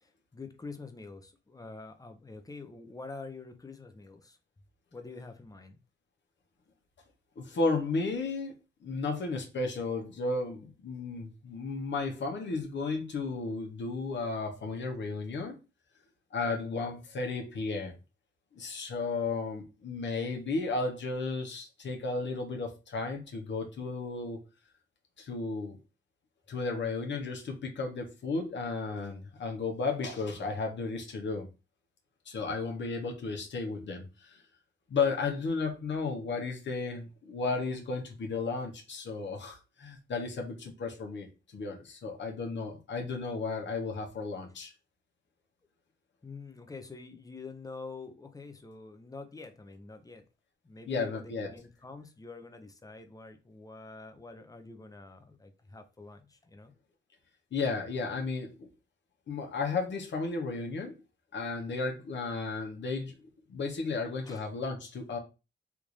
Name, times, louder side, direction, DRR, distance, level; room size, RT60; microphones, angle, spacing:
voice 1, 0.0-4.4 4.9-5.8 46.2-50.2 50.6-56.7 64.2-64.4, left 3 dB, 20° left, 0.6 m, -46 dB
voice 2, 7.4-8.5 8.8-15.6 16.3-17.9 18.5-24.4 25.2-25.8 26.5-31.5 32.3-34.4 34.9-44.7 50.9-51.5 57.5-58.7 59.3-61.0 61.3-63.1 63.5-65.2, left 3 dB, 65° left, 1.0 m, -34 dB
3.5 x 2.6 x 3.0 m
cardioid pair, 80°, 20 cm